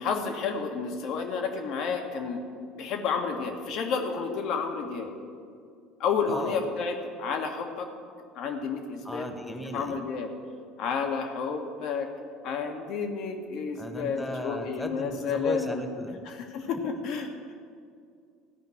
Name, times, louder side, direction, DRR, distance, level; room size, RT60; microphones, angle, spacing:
voice 1, 0.0-2.4 2.8-5.1 6.0-7.9 8.3-9.3 9.7-10.3 10.8-12.1 12.4-15.8 16.2-17.3, left 5 dB, 60° left, 4 dB, 1.5 m, -30 dB
voice 2, 6.3-6.6 9.0-10.0 13.8-16.2, equal, 10° left, 6 dB, 1.5 m, -36 dB
14.5 x 5.3 x 9.5 m, 2.3 s
hypercardioid pair, 65°, 0 cm